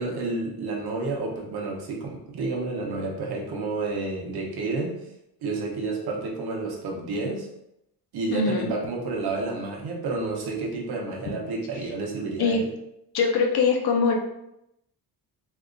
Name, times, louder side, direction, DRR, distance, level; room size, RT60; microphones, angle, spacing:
voice 1, 0.0-5.0 5.4-7.5 8.1-12.6, right 3 dB, 65° right, 0 dB, 1.0 m, -30 dB
voice 2, 8.3-8.7 12.4-12.6 13.1-14.2, left 5 dB, 65° left, 2 dB, 0.7 m, -22 dB
2.7 x 2.3 x 3.8 m, 0.82 s
cardioid pair, 110°, 41 cm